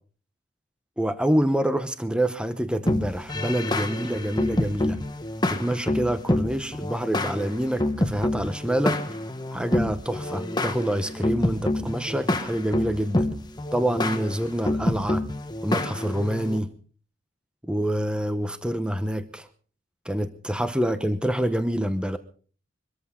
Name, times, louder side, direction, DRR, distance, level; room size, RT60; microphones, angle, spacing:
voice 1, 1.0-5.0 5.5-9.0 9.5-13.3 13.7-15.3 15.6-16.7 17.6-19.5 20.0-22.2, right 1 dB, 5° right, 10 dB, 0.8 m, -26 dB
sound 1, 2.9-16.6, left 1 dB, 20° left, 1.2 m, -28 dB
23.5 x 14.0 x 3.7 m, 0.41 s
head